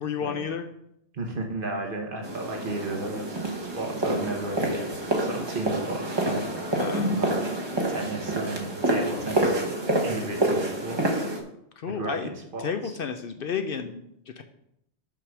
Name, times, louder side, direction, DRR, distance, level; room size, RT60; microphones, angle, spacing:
voice 1, 0.0-0.7 6.8-7.1 11.8-12.3 12.6-14.0 14.4-14.5, left 6 dB, 60° left, 7 dB, 0.7 m, -31 dB
voice 2, 1.1-3.4 3.7-4.8 5.2-6.8 7.1-7.5 7.9-9.6 10.0-11.3 11.9-12.7, right 2 dB, 50° right, 2 dB, 1.3 m, -34 dB
sound 1, 2.2-11.4, right 1 dB, 25° right, 1.0 m, -28 dB
5.9 x 4.9 x 6.1 m, 0.77 s
omnidirectional pair, 1.2 m